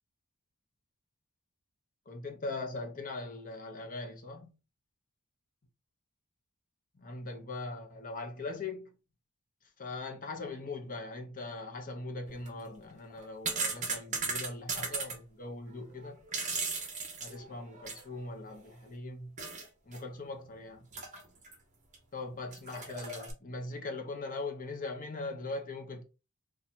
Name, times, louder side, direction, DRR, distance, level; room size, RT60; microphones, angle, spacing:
voice 1, 2.1-4.5 7.0-8.9 9.8-16.2 17.2-19.4 19.9-20.9 22.1-26.0, left 3 dB, 40° left, 0.8 m, -40 dB
sound 1, 12.3-12.5 13.1-15.2 16.0-18.1 18.5-18.6 19.4-19.7 19.9-20.0 20.9-21.5 21.9-22.0 22.5-23.3, right 4 dB, 35° right, 0.8 m, -36 dB
2.7 x 2.4 x 4.2 m
head